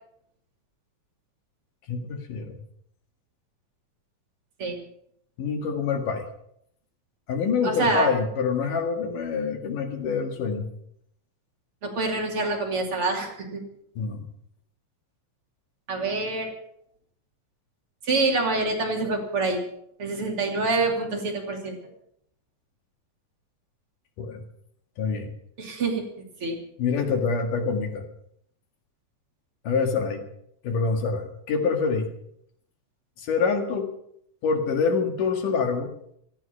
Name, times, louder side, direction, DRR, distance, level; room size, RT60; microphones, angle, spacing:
voice 1, 1.9-2.5 5.4-6.3 7.3-10.7 14.0-14.2 24.2-24.4 25.0-25.3 26.8-28.1 29.7-30.2 30.6-32.1 33.2-33.9 34.4-35.9, left 5 dB, 90° left, 5 dB, 3.6 m, -26 dB
voice 2, 7.6-8.1 11.8-13.6 15.9-16.5 18.0-19.6 20.0-21.7 25.6-26.5, right 3 dB, 45° right, 1 dB, 3.5 m, -26 dB
17.0 x 14.0 x 5.7 m, 0.71 s
omnidirectional pair, 3.6 m